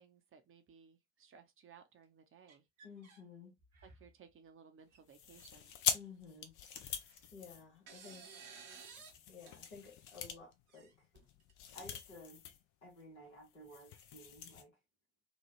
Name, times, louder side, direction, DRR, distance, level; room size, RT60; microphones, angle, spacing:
voice 1, 0.0-2.6 3.8-5.7, right 6 dB, 35° right, 0.6 m, -60 dB
sound 1, 2.5-3.2 3.6-4.1 4.9-5.0 5.3-5.4 6.8-7.3 7.9-9.2 9.5-9.6 10.7-11.5, right 5 dB, 75° right, 0.9 m, -55 dB
voice 2, 2.8-3.5 5.9-6.6 7.3-8.4 9.3-11.1 11.7-12.4 12.8-14.8, left 3 dB, 80° left, 1.2 m, -54 dB
sound 2, 5.1-8.2 8.7-12.6 12.9-13.0 13.4-14.6, left 8 dB, 55° left, 0.6 m, -43 dB
2.9 x 2.2 x 2.9 m
figure-of-eight pair, 40°, 36 cm